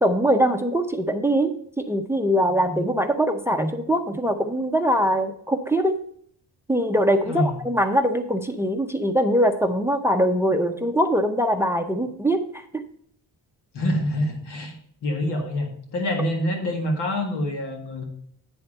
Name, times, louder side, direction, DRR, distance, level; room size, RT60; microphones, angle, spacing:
voice 1, 0.0-1.6 1.9-6.0 6.7-12.8, equal, 5° right, 8 dB, 0.6 m, -22 dB
voice 2, 7.2-7.6 13.7-14.8 15.0-18.0, left 1 dB, 80° left, 3 dB, 1.8 m, -26 dB
9.3 x 3.5 x 6.5 m, 0.63 s
cardioid pair, 90°, 40 cm